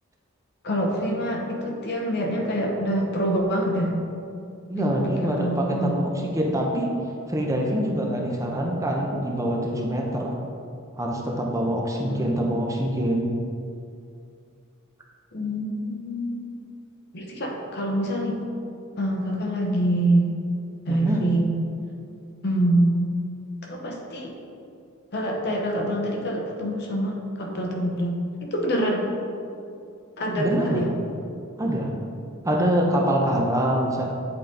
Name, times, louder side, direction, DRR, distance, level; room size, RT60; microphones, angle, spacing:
voice 1, 0.6-4.0 4.7-5.9 12.0-12.4 15.3-16.6 17.1-18.4 19.0-20.3 20.9-21.6 22.4-23.1 23.6-24.3 25.1-29.1 30.2-30.9, right 1 dB, 55° left, 1 dB, 0.8 m, -26 dB
voice 2, 4.7-6.9 7.3-10.4 11.0-13.3 20.9-21.3 30.4-30.9 31.6-31.9 32.4-34.1, equal, 15° right, -1 dB, 0.6 m, -25 dB
7.8 x 3.8 x 3.7 m, 2.5 s
head